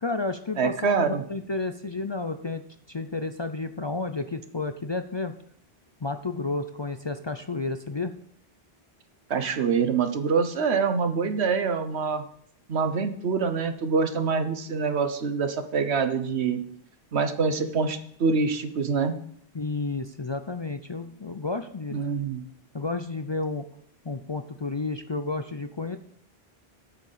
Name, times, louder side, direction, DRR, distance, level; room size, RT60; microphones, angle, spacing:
voice 1, 0.0-5.4 6.0-8.2 19.5-22.0 22.7-23.7 24.0-26.0, left 3 dB, 35° left, 9 dB, 0.4 m, -31 dB
voice 2, 0.6-1.2 9.3-12.2 12.7-16.6 17.1-19.1 21.9-22.4, right 5 dB, 85° right, 9 dB, 1.2 m, -25 dB
8.6 x 6.6 x 7.4 m, 0.65 s
omnidirectional pair, 1.1 m